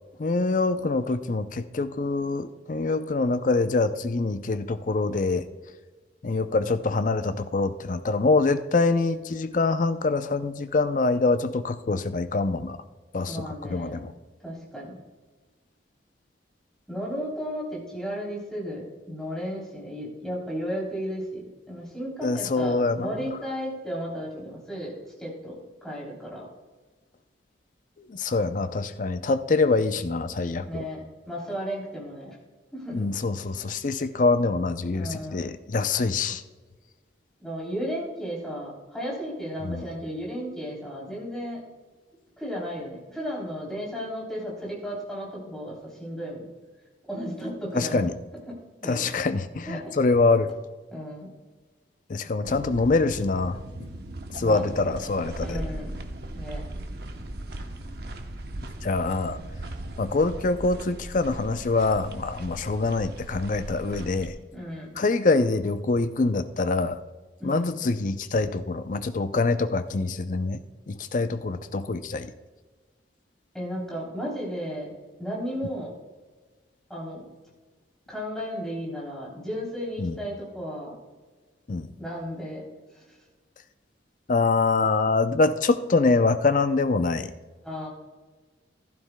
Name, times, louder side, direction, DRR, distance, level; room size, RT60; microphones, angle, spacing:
voice 1, 0.2-5.5 6.2-12.8 13.1-14.1 22.2-23.1 28.0-30.9 32.9-36.4 39.6-39.9 47.7-48.1 48.8-50.5 52.1-53.6 54.3-55.6 58.8-59.4 60.0-64.4 65.0-67.0 67.4-72.3 80.0-80.1 81.7-81.9 84.3-87.3, left 3 dB, 45° left, 11 dB, 0.5 m, -25 dB
voice 2, 13.2-14.0 14.4-15.0 16.9-24.9 25.2-26.5 30.6-32.4 32.7-33.1 34.9-35.5 37.4-41.6 42.4-46.5 47.0-48.1 48.4-49.0 49.7-50.0 50.9-51.3 54.4-55.0 55.4-55.9 56.3-56.6 64.5-64.9 67.4-67.8 73.5-74.9 75.2-75.9 76.9-77.3 78.1-80.9 82.0-82.6 82.9-83.2 87.6-87.9, equal, 5° left, -5 dB, 3.2 m, -34 dB
sound 1, 52.4-64.3, right 1 dB, 60° right, 0.8 m, -38 dB
15.0 x 12.0 x 2.2 m, 1.4 s
head